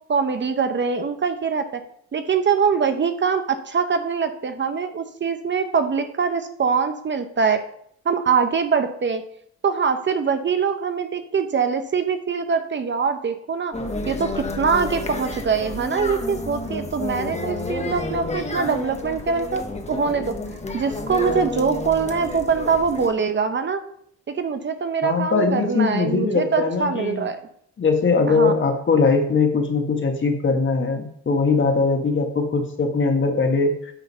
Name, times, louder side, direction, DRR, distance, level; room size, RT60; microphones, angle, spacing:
voice 1, 0.1-1.8 2.1-7.6 8.0-9.2 9.6-13.7 14.1-20.3 20.7-23.8 24.3-27.4 28.3-28.5, right 6 dB, 40° right, 8 dB, 0.8 m, -23 dB
sound 1, 13.7-23.1, left 2 dB, 20° left, 1.2 m, -30 dB
voice 2, 25.0-27.2 27.8-33.9, left 4 dB, 40° left, 4 dB, 1.7 m, -21 dB
9.1 x 3.8 x 5.5 m, 0.66 s
cardioid pair, 90°, 30 cm